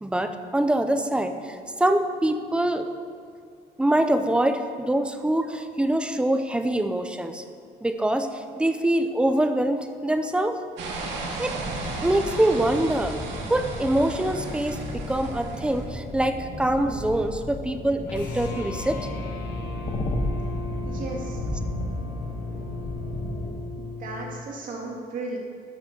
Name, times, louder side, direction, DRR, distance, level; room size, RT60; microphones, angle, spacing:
voice 1, 0.0-2.9 3.8-7.4 7.8-10.6 11.4-11.6 12.0-13.2 13.5-14.8 15.1-19.0, right 1 dB, 5° right, 8 dB, 0.6 m, -24 dB
sound 1, 10.8-15.9, right 3 dB, 90° right, 2.1 m, -35 dB
sound 2, 11.5-23.6, left 1 dB, 30° left, 1.4 m, -34 dB
sound 3, 18.0-24.4, left 2 dB, 90° left, 2.7 m, -35 dB
voice 2, 20.8-21.4 24.0-25.4, right 3 dB, 50° right, -2 dB, 2.4 m, -35 dB
12.5 x 5.9 x 6.7 m, 2.2 s
cardioid pair, 160°, 18 cm